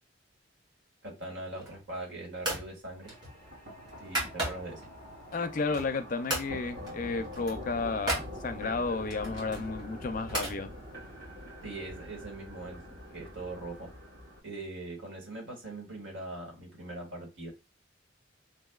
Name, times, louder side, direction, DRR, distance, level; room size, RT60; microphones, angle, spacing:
voice 1, 1.0-3.1 4.0-4.8 11.6-13.9 14.4-17.5, right 2 dB, 80° right, 2.0 m, -41 dB
sound 1, 1.5-1.9 2.4-2.7 3.1-4.8 5.3-6.0 6.3-6.5 6.8-7.0 7.2-8.3 9.1-10.6, right 1 dB, 25° right, 2.4 m, -35 dB
sound 2, 3.0-14.4, left 1 dB, 50° right, 2.2 m, -45 dB
voice 2, 5.3-10.7, left 4 dB, 45° left, 0.4 m, -32 dB
6.2 x 2.6 x 2.3 m
head